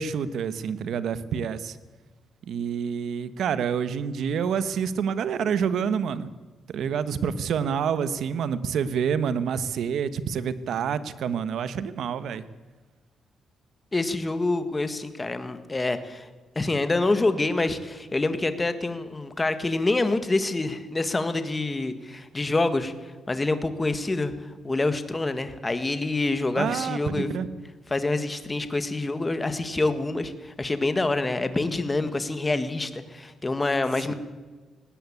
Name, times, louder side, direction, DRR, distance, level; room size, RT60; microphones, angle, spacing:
voice 1, 0.0-1.8 2.5-6.3 6.7-12.5 26.5-27.5, right 7 dB, 70° right, 13 dB, 1.3 m, -27 dB
voice 2, 13.9-16.3 16.5-27.3 27.9-34.1, left 2 dB, 20° left, 10 dB, 1.7 m, -26 dB
19.0 x 18.0 x 8.6 m, 1.3 s
cardioid pair, 135°, 0 cm